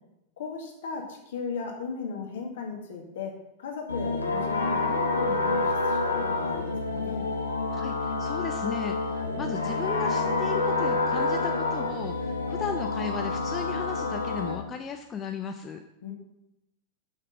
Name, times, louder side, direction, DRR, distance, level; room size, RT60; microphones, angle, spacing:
voice 1, 0.4-3.3 3.6-7.3 16.0-16.1, left 5 dB, 60° left, 2 dB, 1.8 m, -37 dB
sound 1, 3.9-14.5, left 3 dB, 80° left, 1.1 m, -28 dB
voice 2, 7.7-15.8, left 6 dB, 25° left, 5 dB, 0.6 m, -36 dB
6.4 x 5.8 x 6.3 m, 0.88 s
figure-of-eight pair, 90°, 0 cm